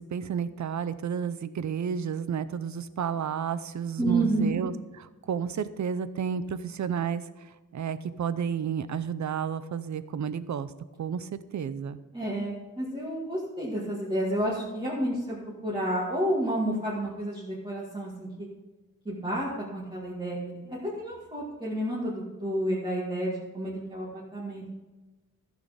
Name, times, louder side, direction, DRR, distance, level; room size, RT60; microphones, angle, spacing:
voice 1, 0.1-4.7 5.3-7.2 7.7-10.7 11.0-12.0, right 7 dB, 60° right, 14 dB, 0.6 m, -31 dB
voice 2, 4.0-4.6 12.1-15.4 15.6-18.5 19.0-24.7, right 1 dB, 15° right, -7 dB, 2.0 m, -30 dB
14.5 x 6.5 x 5.0 m, 1.2 s
wide cardioid pair, 175°, 33 cm